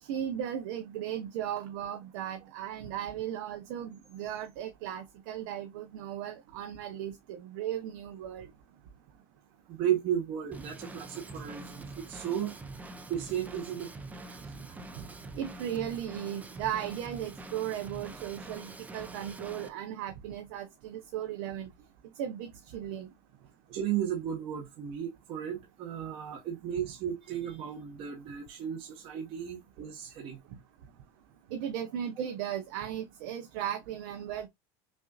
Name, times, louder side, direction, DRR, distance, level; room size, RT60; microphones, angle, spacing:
voice 1, 0.0-8.5 15.3-21.7 22.2-23.1 31.5-34.5, right 10 dB, 70° right, 0.8 m, -36 dB
voice 2, 9.7-12.6 13.1-13.9 14.3-14.4 23.7-30.4, right 10 dB, 45° right, 1.2 m, -34 dB
Drum kit / Drum, 10.5-19.7, right 2 dB, 10° right, 0.5 m, -45 dB
5.9 x 2.6 x 2.3 m
supercardioid pair, 145°, 13 cm